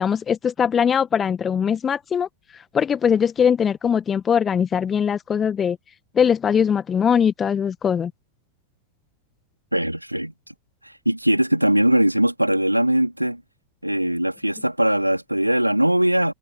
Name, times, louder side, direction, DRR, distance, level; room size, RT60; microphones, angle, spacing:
voice 1, 0.0-5.8 6.1-8.1, left 7 dB, 20° left, 1.5 m, -21 dB
voice 2, 9.7-10.3 11.0-13.4 13.8-16.3, right 1 dB, 90° right, 3.2 m, -20 dB
figure-of-eight pair, 90°, 0 cm